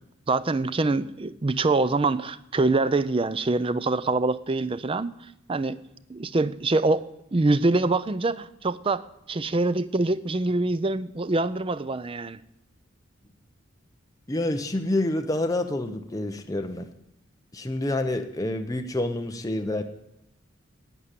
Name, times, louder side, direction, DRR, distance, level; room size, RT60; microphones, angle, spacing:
voice 1, 0.3-5.1 5.5-5.8 6.1-7.0 7.3-12.4, right 2 dB, 25° right, 15 dB, 0.5 m, -24 dB
voice 2, 14.3-16.9 17.5-19.8, left 1 dB, 15° left, 6 dB, 0.7 m, -28 dB
11.0 x 8.9 x 8.2 m, 0.83 s
head